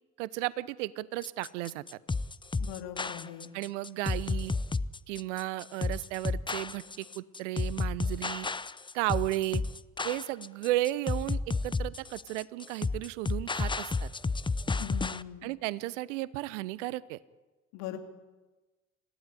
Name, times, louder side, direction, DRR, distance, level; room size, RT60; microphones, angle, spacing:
voice 1, 0.2-1.8 3.5-4.5 5.1-8.5 8.9-9.6 10.0-14.1 15.4-17.2, right 17 dB, 70° right, 20 dB, 1.0 m, -34 dB
sound 1, 1.2-15.2, left 3 dB, 10° left, 0.8 m, -32 dB
voice 2, 2.6-3.5 14.8-15.5 17.7-18.0, left 11 dB, 65° left, 6 dB, 3.0 m, -40 dB
27.0 x 16.5 x 9.8 m, 1.2 s
figure-of-eight pair, 50°, 38 cm